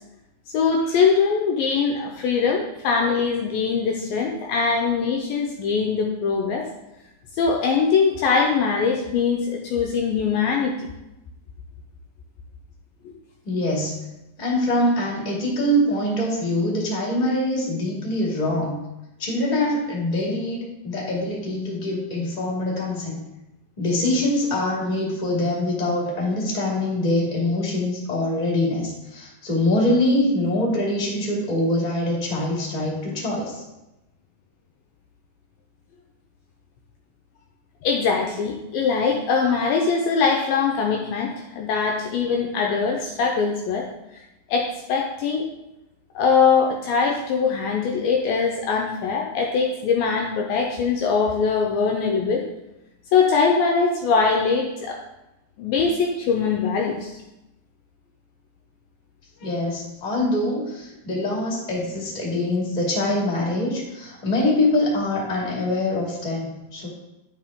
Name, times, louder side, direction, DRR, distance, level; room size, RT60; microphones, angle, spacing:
voice 1, 0.5-6.7 7.4-10.9 37.8-43.9 44.1-44.2 44.5-45.5 46.2-52.5 53.1-55.0 55.6-57.2, left 5 dB, 80° left, 1 dB, 2.2 m, -22 dB
voice 2, 13.4-13.9 14.4-18.8 19.2-23.2 23.8-33.6 59.4-66.9, left 1 dB, 15° left, -3 dB, 1.5 m, -24 dB
11.5 x 5.6 x 3.7 m, 0.94 s
omnidirectional pair, 4.6 m